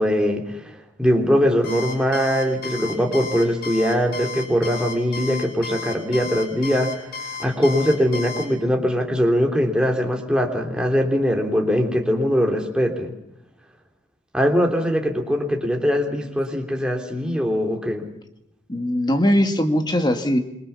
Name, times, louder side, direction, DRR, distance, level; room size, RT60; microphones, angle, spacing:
voice 1, 0.0-13.1 14.3-18.1, equal, 5° right, 2 dB, 3.3 m, -21 dB
Alarm, 1.6-8.5, left 5 dB, 50° left, 6.4 m, -33 dB
voice 2, 18.7-20.4, equal, 20° left, 6 dB, 2.0 m, -20 dB
27.5 x 23.0 x 7.2 m, 0.82 s
head